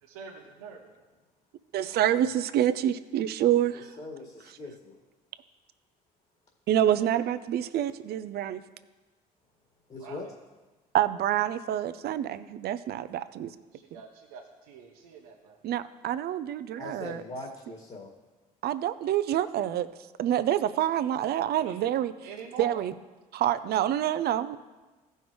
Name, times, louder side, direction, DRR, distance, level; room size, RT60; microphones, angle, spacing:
voice 1, 0.0-0.9 10.0-10.3 13.7-15.6 21.6-21.8 22.2-22.8, right 6 dB, 85° right, 0 dB, 0.9 m, -45 dB
voice 2, 1.7-3.9 6.7-8.6 10.9-13.5 13.9-14.0 15.6-17.2 18.6-19.9 20.2-22.1 22.6-22.9 23.3-24.6, right 11 dB, 60° right, 13 dB, 0.6 m, -27 dB
voice 3, 3.7-5.0 9.9-10.3 16.8-18.1, left 2 dB, 35° left, 0 dB, 1.9 m, -41 dB
15.5 x 5.6 x 3.1 m, 1.2 s
hypercardioid pair, 60°, 18 cm